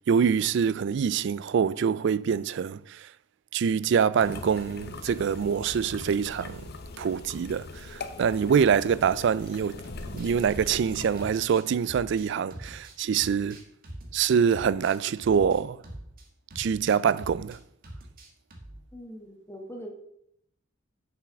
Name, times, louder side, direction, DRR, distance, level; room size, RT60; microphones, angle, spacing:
voice 1, 0.1-3.1 3.5-6.6 7.0-9.8 10.1-13.6 14.1-15.8 16.6-17.6, right 7 dB, 60° right, 0.3 m, -25 dB
sound 1, 4.2-11.3, left 3 dB, 55° left, 0.8 m, -41 dB
sound 2, 9.5-16.3 16.5-17.6 17.8-18.8, right 1 dB, 45° right, 1.6 m, -44 dB
voice 2, 18.9-19.9, equal, 15° left, 1.4 m, -42 dB
7.3 x 5.9 x 6.1 m
head